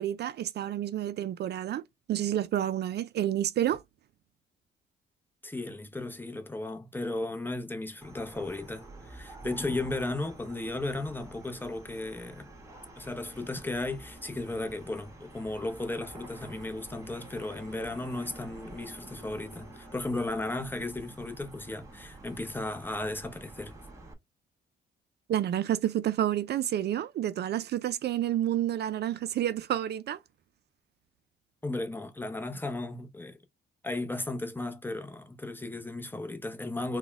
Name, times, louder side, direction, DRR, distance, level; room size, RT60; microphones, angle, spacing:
voice 1, 0.0-1.8 2.1-3.8 25.3-30.2, right 11 dB, 55° right, 0.4 m, -29 dB
voice 2, 5.4-12.5 13.0-23.7 31.6-33.4 33.8-37.0, left 2 dB, 10° left, 0.7 m, -35 dB
sound 1, 8.0-24.1, right 1 dB, 15° right, 1.5 m, -49 dB
4.1 x 2.2 x 3.4 m
cardioid pair, 90°, 20 cm